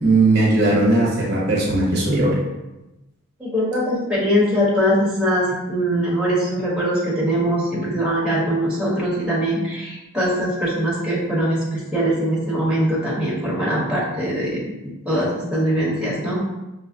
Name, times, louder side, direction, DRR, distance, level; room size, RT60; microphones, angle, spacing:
voice 1, 0.0-2.3, right 2 dB, 50° right, -4 dB, 0.9 m, -18 dB
voice 2, 3.4-16.4, equal, 5° right, -7 dB, 0.8 m, -22 dB
5.1 x 2.0 x 2.5 m, 0.99 s
head